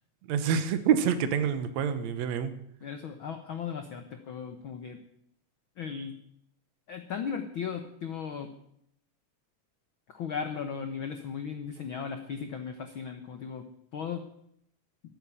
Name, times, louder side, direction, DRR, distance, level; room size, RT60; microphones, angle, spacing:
voice 1, 0.3-2.5, right 7 dB, 65° right, 10 dB, 2.2 m, -27 dB
voice 2, 2.8-5.0 5.8-6.1 6.9-8.5 10.1-13.7 13.9-14.3, left 6 dB, 75° left, 7 dB, 1.1 m, -36 dB
13.5 x 9.2 x 9.7 m, 0.73 s
omnidirectional pair, 3.8 m